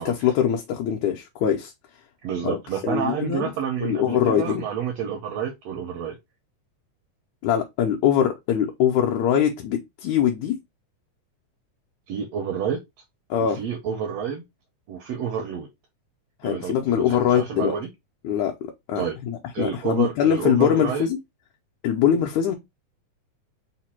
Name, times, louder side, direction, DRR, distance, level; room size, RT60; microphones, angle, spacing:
voice 1, 0.0-1.7 2.4-2.6 2.8-3.5 3.8-4.6 7.4-10.6 13.3-13.6 16.4-17.8 18.2-18.5 18.9-21.2 21.8-22.6, left 9 dB, 75° left, 1.9 m, -22 dB
voice 2, 2.2-6.2 12.1-12.8 13.4-14.4 14.9-15.7 16.4-17.9 19.0-19.2 19.5-21.1, right 8 dB, 75° right, 1.5 m, -29 dB
4.9 x 2.2 x 4.2 m
omnidirectional pair, 3.6 m